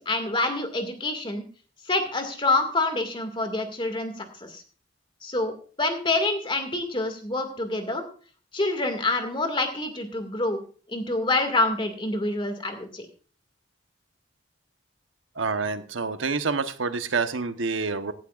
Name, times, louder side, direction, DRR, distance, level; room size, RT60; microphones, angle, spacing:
voice 1, 0.0-1.4 1.9-4.6 5.2-8.0 8.5-10.6 10.9-13.1, left 2 dB, 25° left, 6 dB, 2.1 m, -27 dB
voice 2, 15.3-18.1, right 4 dB, 90° right, 9 dB, 1.1 m, -27 dB
16.5 x 12.5 x 2.5 m, 0.40 s
head